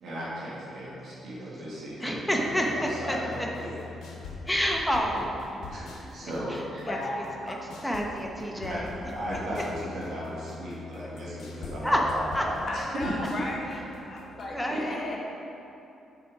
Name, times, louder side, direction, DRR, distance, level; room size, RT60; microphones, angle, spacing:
voice 1, 0.0-3.8 5.1-5.2 5.7-6.9 8.6-13.4 14.7-15.0, equal, 70° right, -7 dB, 1.6 m, -36 dB
voice 2, 2.0-3.5 4.5-5.4 6.5-6.6 6.9-7.0 7.5-7.6 7.8-8.9 11.8-12.0 12.3-12.5 14.5-15.2, equal, 5° left, 0 dB, 1.0 m, -28 dB
sound 1, 2.4-14.5, left 3 dB, 75° left, 1.0 m, -43 dB
voice 3, 6.9-7.6 12.7-13.8 14.0-15.2, left 2 dB, 45° left, -2 dB, 1.3 m, -35 dB
6.9 x 4.5 x 4.8 m, 2.8 s
cardioid pair, 75°, 0 cm